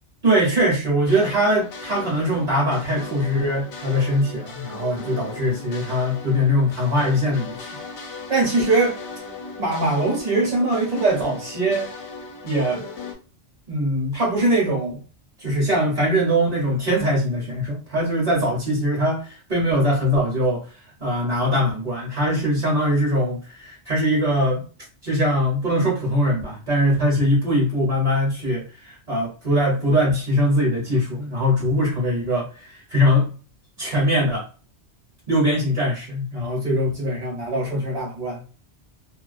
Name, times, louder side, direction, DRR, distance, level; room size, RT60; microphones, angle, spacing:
voice 1, 0.2-7.6 8.3-8.9 9.6-11.9 12.4-12.8 13.7-15.0 15.4-20.6 21.0-24.6 25.0-33.4 33.8-34.4 35.3-38.4, equal, 45° right, 0.8 m, -22 dB
sound 1, 1.1-13.2, left 4 dB, 85° left, 0.9 m, -37 dB
2.3 x 2.2 x 2.4 m
omnidirectional pair, 1.1 m